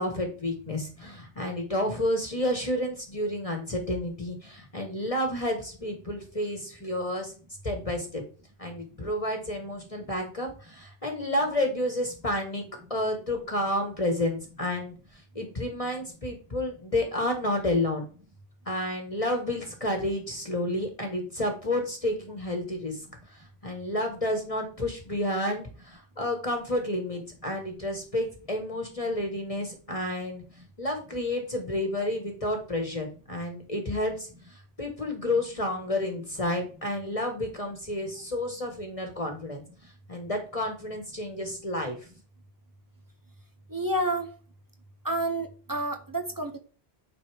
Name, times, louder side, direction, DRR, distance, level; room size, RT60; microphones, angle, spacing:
voice 1, 0.0-7.3 7.6-8.2 8.6-12.6 12.9-14.9 15.3-18.1 18.7-23.0 23.3-30.4 30.8-39.6 40.1-42.0, left 1 dB, 35° left, 3 dB, 1.4 m, -30 dB
voice 2, 43.7-44.3 45.0-46.6, right 1 dB, 20° right, 5 dB, 0.7 m, -29 dB
9.4 x 4.2 x 3.4 m, 0.39 s
omnidirectional pair, 1.1 m